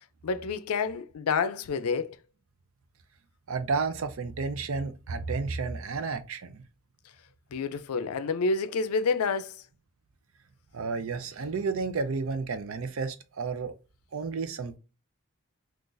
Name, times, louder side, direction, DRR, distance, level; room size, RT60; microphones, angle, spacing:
voice 1, 0.2-2.2 7.5-9.6, left 4 dB, 85° left, 0.4 m, -28 dB
voice 2, 3.5-6.6 10.7-13.7 14.1-14.8, right 4 dB, 70° right, 0.5 m, -31 dB
3.8 x 2.4 x 2.5 m
head